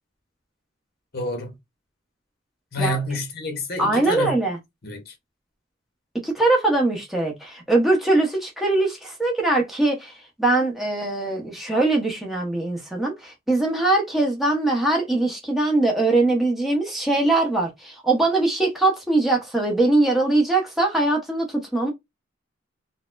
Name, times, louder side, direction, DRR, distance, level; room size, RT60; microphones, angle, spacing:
voice 1, 1.1-1.6 2.7-4.4 4.8-5.1, left 1 dB, 50° left, 1.0 m, -28 dB
voice 2, 3.8-4.6 6.2-10.1 10.4-21.9, right 2 dB, ahead, 0.9 m, -21 dB
4.0 x 2.1 x 2.5 m
head